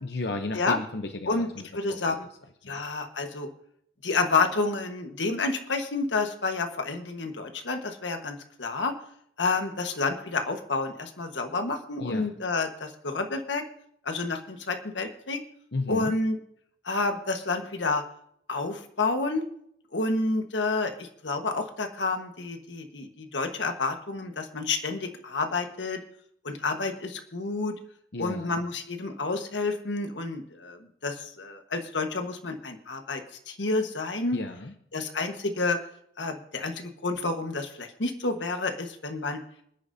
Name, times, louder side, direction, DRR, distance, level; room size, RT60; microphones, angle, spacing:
voice 1, 0.0-2.0 2.6-2.8 12.0-12.3 15.7-16.1 28.1-28.6 34.3-34.7, left 2 dB, 65° left, 5 dB, 0.8 m, -34 dB
voice 2, 1.7-2.3 2.7-3.5 4.0-8.9 9.4-13.6 14.0-15.4 15.9-16.4 16.8-18.0 18.5-19.4 19.9-26.0 26.4-27.7 28.2-34.4 34.9-35.8 36.2-39.4, left 3 dB, 85° left, 6 dB, 1.4 m, -29 dB
27.0 x 10.0 x 2.7 m, 0.70 s
head